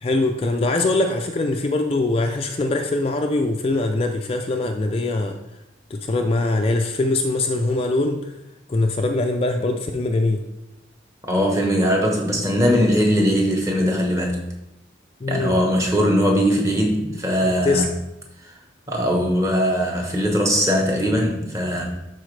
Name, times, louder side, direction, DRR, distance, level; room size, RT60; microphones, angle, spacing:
voice 1, 0.0-5.4 5.9-8.3 8.7-10.4 15.2-15.6 17.4-17.9, left 2 dB, 30° left, 4 dB, 0.4 m, -22 dB
voice 2, 11.3-14.4 15.3-17.9 18.4-18.5 18.9-21.8, equal, 15° right, 0 dB, 1.0 m, -20 dB
11.5 x 4.1 x 3.3 m, 0.93 s
head